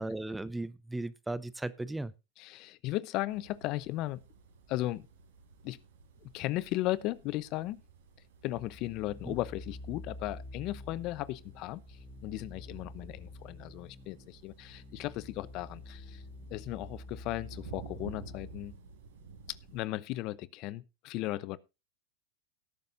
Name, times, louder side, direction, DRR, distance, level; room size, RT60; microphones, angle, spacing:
voice 1, 0.0-2.1 9.2-9.3, right 2 dB, 5° right, 0.7 m, -36 dB
voice 2, 2.4-4.2 4.7-5.1 5.6-5.8 6.2-7.8 8.4-16.2 16.5-18.7 19.7-21.6, left 16 dB, 50° left, 0.8 m, -36 dB
sound 1, 3.3-19.8, right 6 dB, 80° right, 4.3 m, -54 dB
sound 2, 8.5-18.8, left 2 dB, 15° left, 2.6 m, -48 dB
17.5 x 9.4 x 2.6 m
hypercardioid pair, 115°, 0 cm